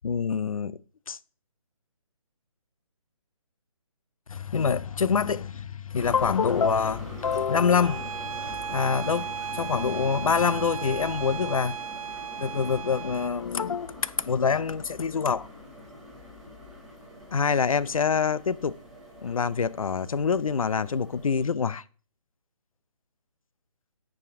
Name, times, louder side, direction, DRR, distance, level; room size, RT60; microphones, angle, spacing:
voice 1, 0.0-0.8 1.1-1.2 4.3-8.2 8.7-11.8 12.4-15.5 17.3-18.7 19.2-21.8, left 6 dB, 75° left, 0.6 m, -26 dB
sound 1, 5.9-21.5, left 1 dB, ahead, 0.4 m, -44 dB
Bowed string instrument, 7.8-13.4, right 9 dB, 70° right, 0.5 m, -36 dB
9.5 x 5.0 x 3.7 m
hypercardioid pair, 160°, 18 cm